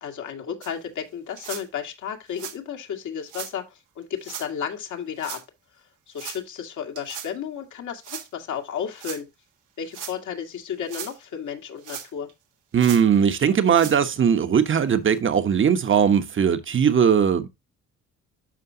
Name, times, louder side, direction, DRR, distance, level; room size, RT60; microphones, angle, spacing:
voice 1, 0.0-5.4 6.1-9.3 9.8-12.3, left 8 dB, 75° left, 2.0 m, -33 dB
sound 1, 0.6-0.7 1.4-1.6 2.3-2.6 3.3-3.5 4.2-4.5 5.2-5.4 6.1-6.4 7.0-7.3 8.0-8.3 9.0-9.2 9.8-10.2 10.7-11.2 11.8-12.3 12.8-13.0 13.6-14.0 14.6-14.7 15.1-15.2 16.0-16.1, right 9 dB, 90° right, 1.6 m, -37 dB
voice 2, 12.7-17.5, right 7 dB, 40° right, 1.1 m, -19 dB
12.0 x 4.6 x 2.8 m
cardioid pair, 90°, 30 cm